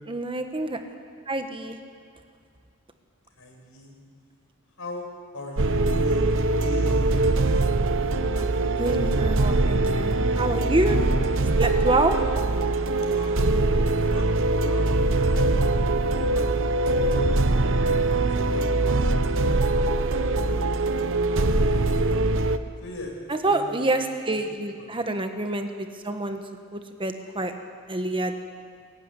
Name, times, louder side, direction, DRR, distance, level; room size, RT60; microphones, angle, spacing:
voice 1, 0.1-0.8 1.3-1.8 8.4-8.5 8.8-11.0 11.6-12.2 23.3-26.4 26.7-27.5 27.9-28.4, right 2 dB, 25° right, 6 dB, 1.3 m, -27 dB
voice 2, 3.4-3.9 4.8-5.1 5.3-7.1 13.1-13.6 14.1-16.5 16.9-17.4 18.0-22.0 22.8-23.2 23.4-23.8 24.3-24.9, left 1 dB, 70° left, 1 dB, 5.7 m, -41 dB
sound 1, 5.6-22.6, right 2 dB, 65° right, 0.9 m, -22 dB
22.0 x 15.5 x 9.9 m, 2.1 s
head